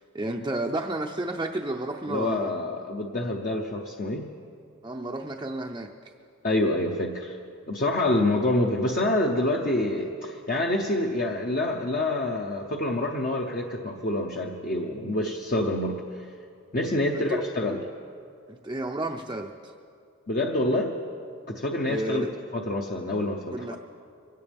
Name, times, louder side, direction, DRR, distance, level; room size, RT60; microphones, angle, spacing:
voice 1, 0.0-2.5 4.8-5.9 17.1-17.4 18.5-19.7 21.9-22.3 23.5-23.8, right 1 dB, 20° right, 0 dB, 0.5 m, -31 dB
voice 2, 2.1-4.3 6.4-7.3 7.7-16.0 16.7-17.8 20.3-20.9 21.5-22.3 22.5-23.6, left 1 dB, 40° left, 1 dB, 0.8 m, -27 dB
23.5 x 17.0 x 3.5 m, 2.5 s
head